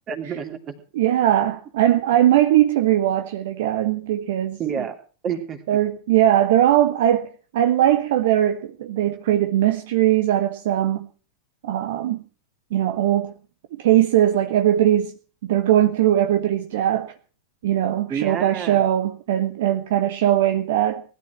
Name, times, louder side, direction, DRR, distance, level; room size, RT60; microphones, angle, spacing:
voice 1, 0.1-0.8 4.6-5.0 5.2-5.8 18.1-18.9, right 7 dB, 30° right, 2.9 m, -29 dB
voice 2, 1.0-4.6 5.7-11.1 11.6-12.2 12.7-13.3 13.7-15.1 15.4-17.1 17.6-21.0, right 12 dB, 55° right, 1.0 m, -20 dB
19.5 x 12.5 x 4.5 m
figure-of-eight pair, 90°, 0 cm